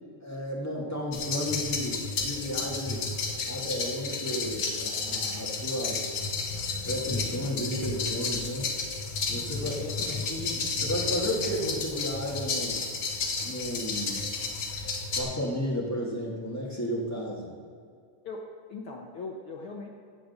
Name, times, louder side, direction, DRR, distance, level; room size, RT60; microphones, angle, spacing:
voice 1, 0.2-3.1 3.5-6.0 6.9-8.7 9.3-9.7 10.3-12.8 13.4-14.3 15.1-17.5, equal, 5° left, -3 dB, 1.5 m, -33 dB
sound 1, 1.1-15.2, left 4 dB, 55° left, 1.2 m, -32 dB
voice 2, 9.6-10.3 18.2-19.9, left 3 dB, 70° left, 0 dB, 1.2 m, -40 dB
15.5 x 5.1 x 8.2 m, 2.2 s
omnidirectional pair, 3.7 m